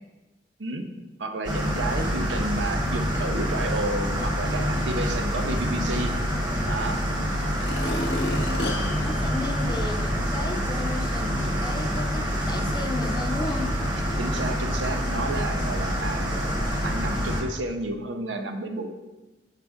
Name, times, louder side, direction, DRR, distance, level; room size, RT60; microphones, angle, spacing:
voice 1, 1.2-6.1 6.7-7.0 14.2-18.9, right 2 dB, 85° right, 6 dB, 0.6 m, -31 dB
sound 1, 1.4-17.4, equal, 20° right, 0.9 m, -26 dB
voice 2, 1.8-2.4 8.3-13.8, left 2 dB, 25° left, 3 dB, 0.5 m, -35 dB
sound 2, 7.5-10.3 10.8-10.9, left 2 dB, 70° left, 0.8 m, -33 dB
5.8 x 5.1 x 3.5 m, 1.1 s
head